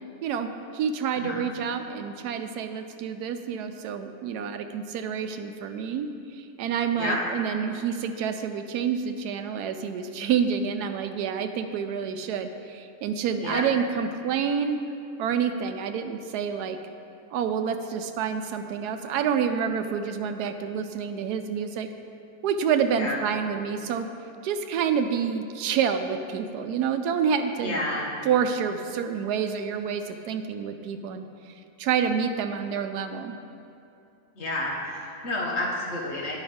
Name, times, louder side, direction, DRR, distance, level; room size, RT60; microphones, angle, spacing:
voice 1, 0.7-6.1 6.3-14.8 15.2-16.8 17.3-21.9 22.4-24.1 24.4-27.8 28.2-31.3 31.8-33.4, right 7 dB, 90° right, 7 dB, 1.1 m, -28 dB
voice 2, 27.6-28.1 34.4-36.4, left 2 dB, 50° left, -2 dB, 1.4 m, -30 dB
9.4 x 4.9 x 5.2 m, 2.6 s
omnidirectional pair, 1.6 m